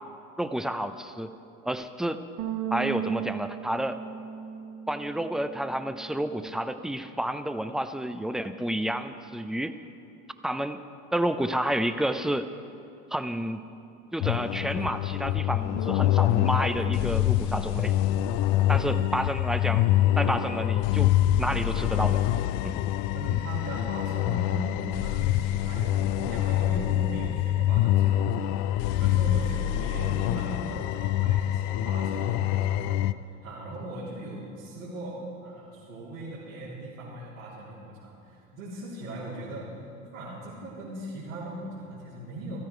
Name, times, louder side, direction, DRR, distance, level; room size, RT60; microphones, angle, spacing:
voice 1, 0.4-1.3 1.6-2.2 2.7-4.0 4.9-9.8 10.4-10.8 11.1-12.5 13.1-13.6 14.1-17.9 18.7-19.9 20.1-22.2 22.6-22.7, right 1 dB, ahead, 10 dB, 0.5 m, -30 dB
Bass guitar, 2.4-8.6, right 10 dB, 50° right, 1.7 m, -38 dB
sound 1, 14.2-33.1, left 13 dB, 50° left, 0.5 m, -25 dB
voice 2, 23.1-33.0 33.4-39.7 40.1-42.6, right 1 dB, 75° right, -9 dB, 3.5 m, -39 dB
14.5 x 14.5 x 4.7 m, 2.6 s
hypercardioid pair, 75°, 40 cm